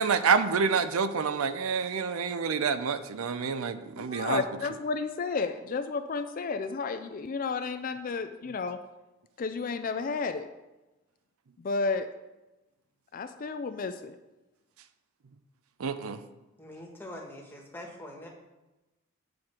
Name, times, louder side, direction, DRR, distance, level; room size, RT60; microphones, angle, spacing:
voice 1, 0.0-4.4 15.8-16.2, right 5 dB, 75° right, 11 dB, 0.5 m, -27 dB
voice 2, 4.0-8.8 9.4-10.5 11.6-12.1 13.1-14.2, left 4 dB, 40° left, 9 dB, 0.4 m, -32 dB
voice 3, 16.6-18.3, left 1 dB, 10° left, 0 dB, 1.3 m, -44 dB
8.6 x 6.3 x 4.3 m, 1.1 s
head